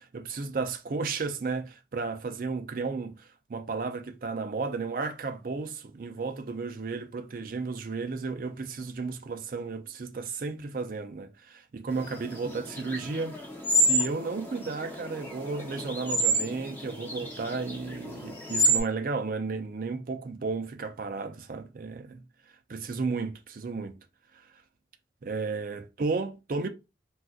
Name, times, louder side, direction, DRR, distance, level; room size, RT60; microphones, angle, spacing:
voice 1, 0.0-13.4 13.7-22.2 22.7-24.0 25.2-26.7, right 4 dB, 50° right, 0.4 m, -33 dB
sound 1, 12.0-18.8, right 1 dB, 10° left, 0.7 m, -29 dB
3.8 x 2.3 x 2.4 m
head